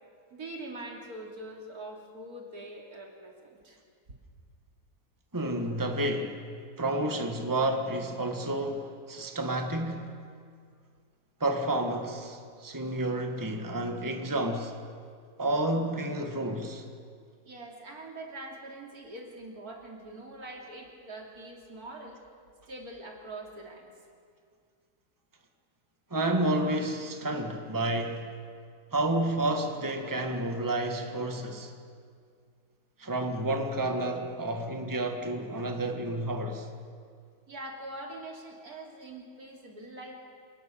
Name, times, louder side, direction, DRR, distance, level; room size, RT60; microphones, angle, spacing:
voice 1, 0.3-3.8 17.5-22.2 22.7-23.9 37.5-40.2, right 2 dB, 75° right, 3.5 m, -43 dB
voice 2, 5.3-6.4 6.8-10.1 11.4-14.7 15.4-16.8 26.1-28.2 28.9-31.7 33.0-36.7, right 1 dB, 15° right, 1.7 m, -30 dB
28.0 x 19.0 x 7.0 m
omnidirectional pair, 1.6 m